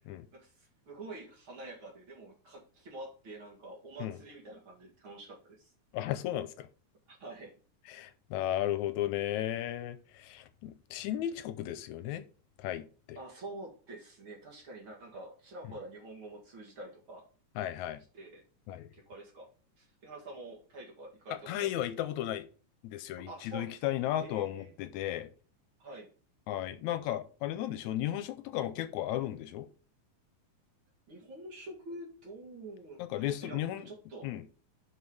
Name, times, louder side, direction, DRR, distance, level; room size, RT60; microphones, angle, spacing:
voice 1, 0.3-5.7 7.1-7.6 13.1-17.3 18.1-18.4 18.9-19.5 19.8-21.8 23.3-24.7 25.8-26.1 31.1-34.3, right 2 dB, 45° right, -1 dB, 2.6 m, -47 dB
voice 2, 5.9-6.7 7.9-12.2 12.6-13.2 17.6-18.0 18.7-18.9 21.3-22.5 22.8-25.3 26.5-29.7 33.0-33.9 34.2-34.6, left 12 dB, 80° left, 12 dB, 1.9 m, -35 dB
6.1 x 5.5 x 4.8 m, 0.38 s
omnidirectional pair, 3.4 m